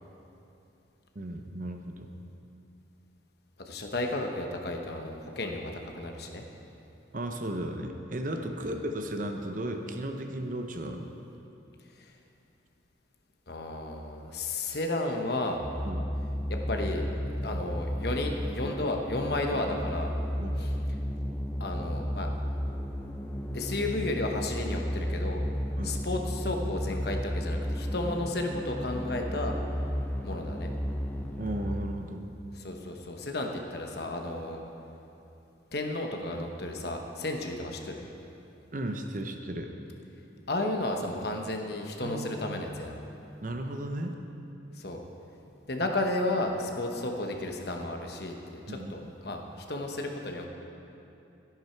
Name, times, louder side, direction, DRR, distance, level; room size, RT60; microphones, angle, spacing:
voice 1, 1.1-2.1 7.1-11.1 15.8-16.1 20.4-20.6 25.8-26.0 31.4-32.2 38.7-39.7 42.0-42.6 43.4-44.2 48.7-49.1, right 1 dB, 45° right, 5 dB, 0.7 m, -35 dB
voice 2, 3.7-6.4 8.6-8.7 12.0-12.1 13.5-15.6 16.5-17.1 17.4-20.1 20.6-20.7 21.6-22.3 23.5-25.5 25.8-29.6 30.2-30.7 32.5-34.6 35.7-38.1 40.5-43.0 44.8-45.0 45.7-50.5, left 2 dB, 55° left, 2 dB, 1.1 m, -33 dB
sound 1, 15.6-31.8, equal, 10° left, 0.6 m, -33 dB
13.0 x 11.0 x 4.5 m, 2.8 s
head